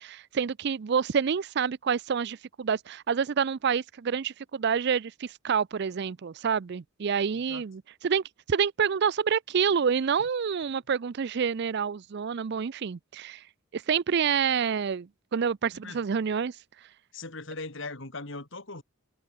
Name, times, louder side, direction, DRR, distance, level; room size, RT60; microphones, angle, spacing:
voice 1, 0.0-13.4 13.7-16.6, right 6 dB, 50° right, 0.4 m, -28 dB
voice 2, 17.1-18.8, left 3 dB, 60° left, 2.8 m, -39 dB
head